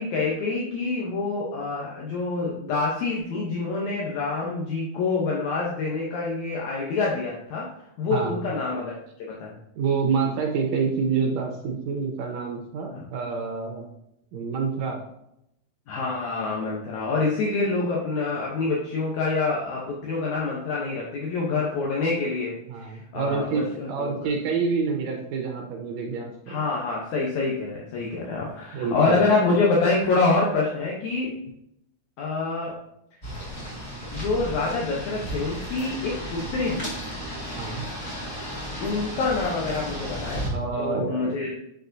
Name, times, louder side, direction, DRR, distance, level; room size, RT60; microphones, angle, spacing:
voice 1, 0.0-7.7 8.0-8.9 9.3-9.6 12.9-13.0 15.9-24.3 26.5-31.4 32.2-32.7 34.1-36.9 38.8-40.4 40.8-41.5, left 3 dB, 75° left, -3 dB, 2.2 m, -26 dB
voice 2, 8.1-8.5 9.8-13.9 14.3-15.0 22.7-26.6 28.7-29.2 37.6-37.9 40.5-41.5, right 5 dB, 75° right, 2 dB, 1.8 m, -27 dB
sound 1, 33.2-40.5, equal, 25° left, 1.4 m, -34 dB
8.2 x 4.5 x 2.6 m, 0.79 s
omnidirectional pair, 3.5 m